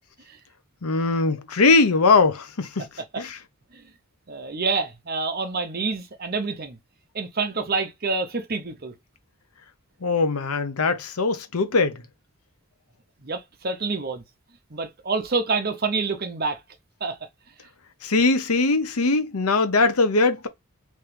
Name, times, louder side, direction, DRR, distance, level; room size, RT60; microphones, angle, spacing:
voice 1, 0.8-2.9 3.2-3.4 10.0-12.0 18.0-20.5, left 3 dB, 80° left, 0.8 m, -21 dB
voice 2, 4.3-6.8 7.1-9.0 13.2-14.2 14.7-16.6 17.0-17.2, right 4 dB, 45° right, 0.8 m, -27 dB
3.3 x 3.2 x 3.3 m
head